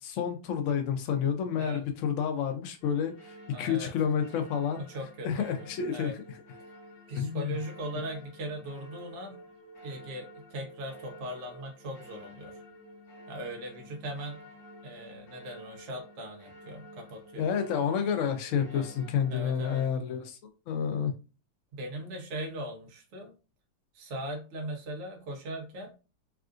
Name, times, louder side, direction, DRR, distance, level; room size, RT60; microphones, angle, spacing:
voice 1, 0.0-4.8 5.2-6.1 7.1-7.5 17.4-20.4 20.7-21.1, left 7 dB, 75° left, 5 dB, 0.7 m, -29 dB
sound 1, 2.8-19.9, equal, 40° left, 1.2 m, -51 dB
voice 2, 3.5-3.9 4.7-6.2 7.1-9.4 9.8-12.6 13.3-14.5 14.8-17.5 18.7-18.9 19.3-19.8 21.7-23.3 23.9-25.9, right 1 dB, 55° right, 1 dB, 1.0 m, -39 dB
3.5 x 2.4 x 2.4 m, 0.32 s
omnidirectional pair, 1.8 m